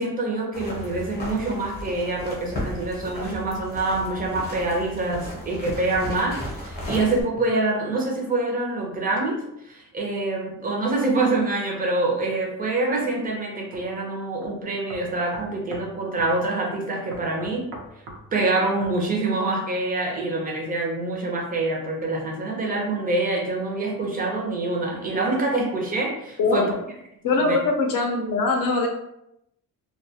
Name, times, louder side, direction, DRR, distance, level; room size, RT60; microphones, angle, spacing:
voice 1, 0.0-17.6 18.3-26.7 27.3-27.6, right 2 dB, 25° right, -1 dB, 0.5 m, -26 dB
sound 1, 0.5-7.2, left 1 dB, 25° left, 0.7 m, -35 dB
sound 2, 13.7-13.9 14.4-14.5 14.9-15.9 16.2-16.3 17.1-18.2 18.8-19.0, right 2 dB, 80° right, 0.6 m, -40 dB
voice 2, 27.2-28.9, left 3 dB, 65° left, 2 dB, 0.6 m, -22 dB
2.2 x 2.2 x 2.7 m, 0.81 s
cardioid pair, 165°, 36 cm